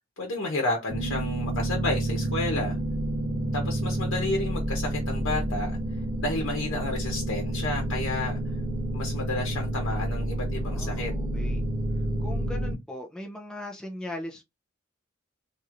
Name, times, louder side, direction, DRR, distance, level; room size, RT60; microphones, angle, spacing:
voice 1, 0.2-2.8 3.5-5.7 6.2-8.4 8.9-11.1, left 2 dB, 90° left, 0.9 m, -31 dB
sound 1, 0.9-12.7, right 1 dB, 40° right, 1.0 m, -29 dB
voice 2, 10.6-11.6 12.2-14.6, left 1 dB, 5° left, 0.6 m, -39 dB
3.1 x 2.7 x 2.5 m
head